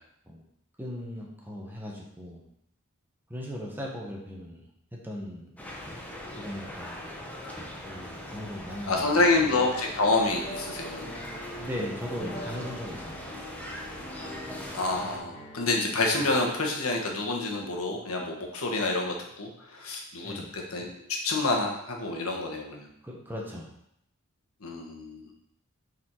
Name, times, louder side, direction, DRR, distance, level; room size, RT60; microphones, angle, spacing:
voice 1, 0.8-2.4 3.3-5.5 6.4-7.1 7.8-9.3 11.6-13.2 20.2-20.6 23.0-23.7, equal, 10° right, -2 dB, 1.3 m, -38 dB
sound 1, 5.6-15.2, left 1 dB, 5° left, 0.9 m, -41 dB
voice 2, 8.9-11.1 14.7-22.9 24.6-25.2, left 3 dB, 80° left, 1 dB, 1.3 m, -28 dB
sound 2, 9.5-19.4, equal, 40° left, 2.1 m, -44 dB
7.1 x 4.3 x 4.6 m, 0.74 s
head